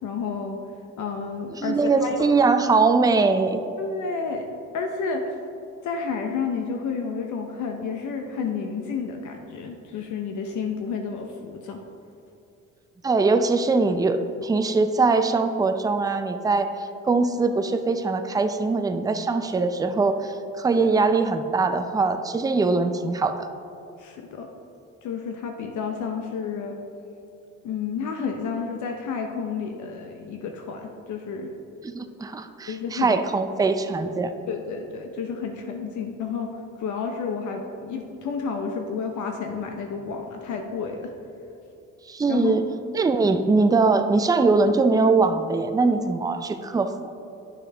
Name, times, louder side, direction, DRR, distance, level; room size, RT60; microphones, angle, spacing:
voice 1, 0.0-0.6 1.0-2.2 3.8-4.5 4.7-5.3 5.8-11.8 20.8-20.9 24.0-24.5 25.0-26.8 27.6-31.5 32.7-33.2 34.5-41.1 42.3-42.6, left 5 dB, 75° left, 3 dB, 0.7 m, -31 dB
voice 2, 1.5-3.6 13.0-14.2 14.4-16.7 17.0-23.5 31.8-34.3 42.1-42.6 42.9-47.1, right 3 dB, 15° right, 8 dB, 0.4 m, -22 dB
8.8 x 6.2 x 3.3 m, 2.8 s
cardioid pair, 90°, 30 cm